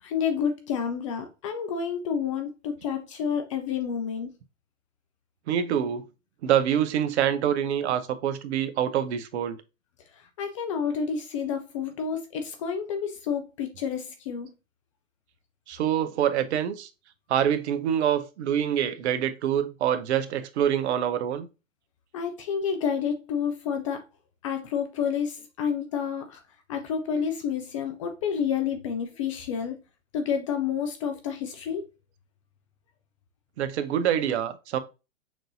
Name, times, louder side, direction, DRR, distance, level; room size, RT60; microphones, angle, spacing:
voice 1, 0.0-4.3 10.1-14.5 22.1-24.1 24.4-26.4 26.7-29.8 30.1-31.9, left 7 dB, 25° left, 0.3 m, -29 dB
voice 2, 5.5-6.0 6.4-9.6 15.7-16.9 17.3-21.5 33.6-34.8, right 9 dB, 55° right, 0.7 m, -25 dB
6.0 x 2.6 x 2.6 m
hypercardioid pair, 115°, 39 cm